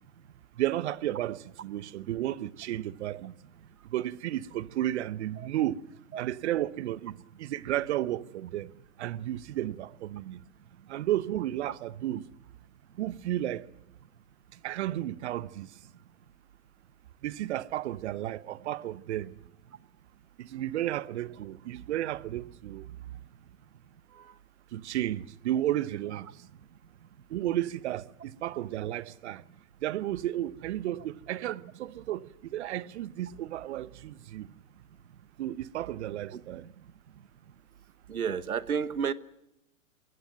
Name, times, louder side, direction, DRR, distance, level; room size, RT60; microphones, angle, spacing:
voice 1, 0.6-3.3 3.9-5.8 6.2-8.7 9.0-10.4 10.9-12.2 13.0-13.7 14.6-15.7 17.2-19.3 20.4-22.8 24.7-26.3 27.3-29.4 29.8-32.3 32.5-34.5 35.4-36.6, right 13 dB, 50° right, 0.9 m, -33 dB
voice 2, 38.1-39.1, right 7 dB, 85° right, 1.1 m, -31 dB
21.0 x 17.0 x 9.3 m
hypercardioid pair, 120°, 43 cm